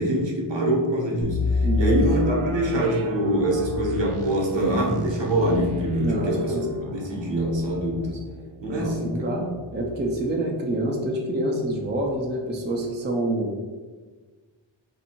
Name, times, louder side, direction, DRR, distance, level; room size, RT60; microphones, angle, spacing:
voice 1, 0.0-1.4 1.7-6.5 6.9-8.2 8.6-9.3, right 1 dB, 65° right, -1 dB, 0.9 m, -24 dB
sound 1, 1.2-10.9 11.3-11.4 11.9-12.1, left 2 dB, 85° right, 0.5 m, -31 dB
voice 2, 1.6-2.0 6.0-6.7 8.8-13.6, right 1 dB, 25° right, -1 dB, 0.4 m, -27 dB
2.7 x 2.6 x 4.2 m, 1.4 s
wide cardioid pair, 110°, 48 cm